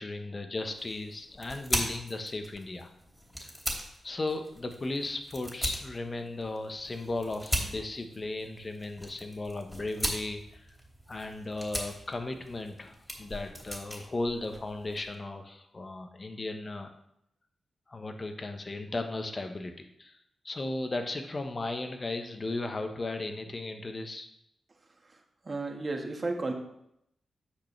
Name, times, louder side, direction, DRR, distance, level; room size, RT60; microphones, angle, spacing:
voice 1, 0.0-2.9 3.4-3.5 4.0-10.7 11.1-16.9 17.9-19.7 20.0-20.2 20.4-24.3, left 2 dB, 40° left, 6 dB, 1.2 m, -36 dB
sound 1, 0.6-15.2, equal, 5° left, 3.0 m, -39 dB
voice 2, 25.4-26.5, right 3 dB, 45° right, 2 dB, 1.6 m, -32 dB
9.8 x 6.2 x 3.4 m, 0.78 s
supercardioid pair, 40°, 0 cm